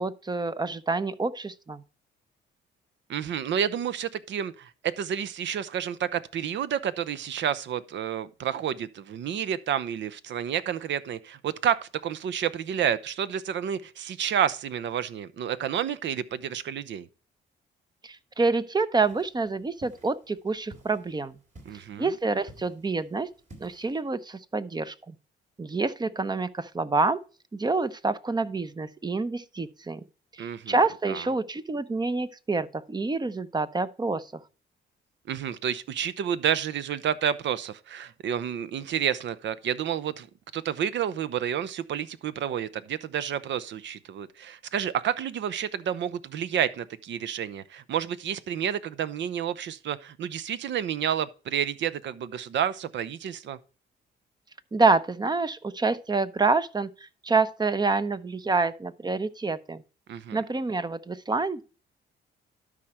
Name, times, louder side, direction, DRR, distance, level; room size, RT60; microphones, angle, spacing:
voice 1, 0.0-1.8 18.0-21.4 22.0-23.3 23.6-25.1 25.6-27.2 27.5-30.0 30.3-34.3 54.7-59.8 60.3-61.6, right 3 dB, 20° right, 0.7 m, -27 dB
voice 2, 3.1-17.1 21.7-22.1 30.4-30.8 31.1-31.3 35.3-40.3 40.5-53.6 60.1-60.4, right 9 dB, 65° right, 0.8 m, -30 dB
sound 1, 19.0-24.0, right 1 dB, 40° right, 3.2 m, -53 dB
12.0 x 5.0 x 4.3 m
cardioid pair, 90°, 20 cm